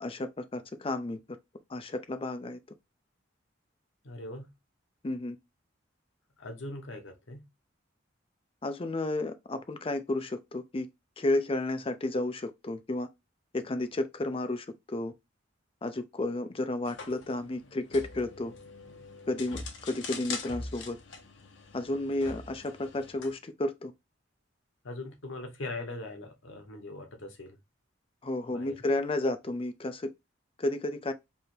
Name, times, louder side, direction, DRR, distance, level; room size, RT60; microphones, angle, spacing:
voice 1, 0.0-1.2 1.7-2.6 5.0-5.4 8.6-10.9 11.2-13.1 13.5-15.1 15.8-18.5 19.3-21.0 21.7-23.9 28.2-30.1 30.6-31.1, left 2 dB, 30° left, 0.5 m, -32 dB
voice 2, 4.0-4.5 6.4-7.4 24.8-27.6 28.5-28.8, left 2 dB, 85° left, 1.0 m, -41 dB
sound 1, 16.9-23.3, left 4 dB, 70° left, 0.9 m, -43 dB
3.4 x 2.6 x 4.4 m
head